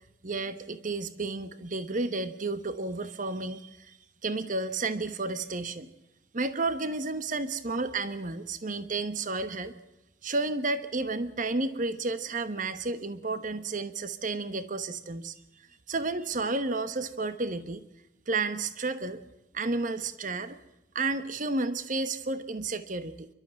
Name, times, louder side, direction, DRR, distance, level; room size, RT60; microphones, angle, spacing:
voice 1, 0.2-4.0 4.2-5.9 6.3-9.7 10.2-15.3 15.9-17.8 18.3-19.2 19.5-20.6 20.9-23.3, right 3 dB, 45° right, 11 dB, 1.1 m, -31 dB
28.0 x 12.5 x 7.7 m, 0.93 s
head